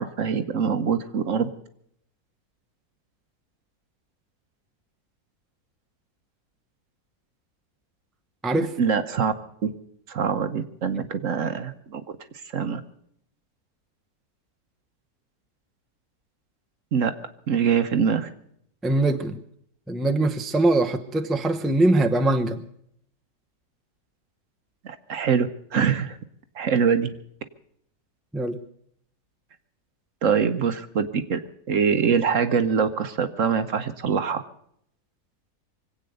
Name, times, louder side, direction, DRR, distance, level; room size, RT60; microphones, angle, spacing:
voice 1, 0.0-1.5 8.8-9.3 9.6-9.7 10.1-12.0 12.5-12.8 16.9-17.1 17.5-18.3 24.8-26.2 26.6-27.1 30.2-31.4 31.7-34.4, right 6 dB, 60° right, 10 dB, 1.2 m, -24 dB
voice 2, 8.4-8.8 18.8-19.4 19.9-22.6 28.3-28.6, right 2 dB, ahead, 5 dB, 0.7 m, -22 dB
24.5 x 8.7 x 6.6 m, 0.68 s
omnidirectional pair, 1.7 m